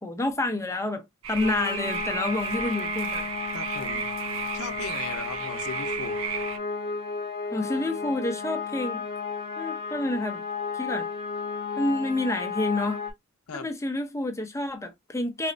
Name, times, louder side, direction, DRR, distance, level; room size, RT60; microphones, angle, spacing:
voice 1, 0.0-3.3 7.5-9.0 9.6-10.4 10.7-11.1 11.8-13.0 13.5-15.5, left 2 dB, 15° left, 0.6 m, -29 dB
sound 1, 1.2-6.6, right 7 dB, 70° right, 0.5 m, -34 dB
sound 2, 1.4-13.1, left 5 dB, 40° left, 1.0 m, -33 dB
voice 2, 3.5-4.1 4.5-6.2 13.5-13.7, left 5 dB, 85° left, 0.6 m, -37 dB
4.1 x 2.0 x 2.4 m
head